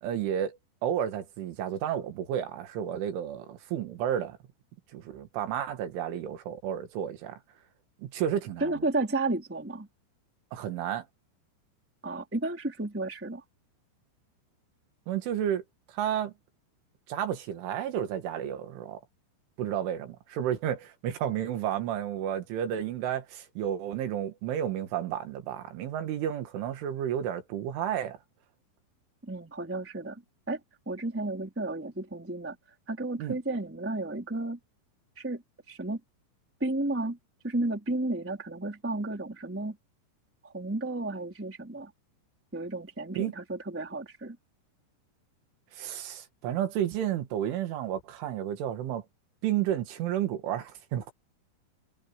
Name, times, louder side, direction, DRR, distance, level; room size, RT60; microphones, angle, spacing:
voice 1, 0.0-4.4 4.9-7.4 8.0-8.8 10.5-11.1 15.1-15.6 15.9-16.3 17.1-19.0 19.6-28.2 33.2-33.4 43.1-43.3 45.7-49.0 49.4-51.1, right 10 dB, 75° right, 4.4 m, -31 dB
voice 2, 8.6-9.9 12.0-13.4 29.2-30.2 30.5-30.6 30.8-32.6 32.9-34.6 35.2-35.4 35.7-36.0 36.6-37.2 37.4-39.8 40.4-41.9 42.5-44.4, right 2 dB, 5° right, 2.9 m, -32 dB
omnidirectional pair, 5.6 m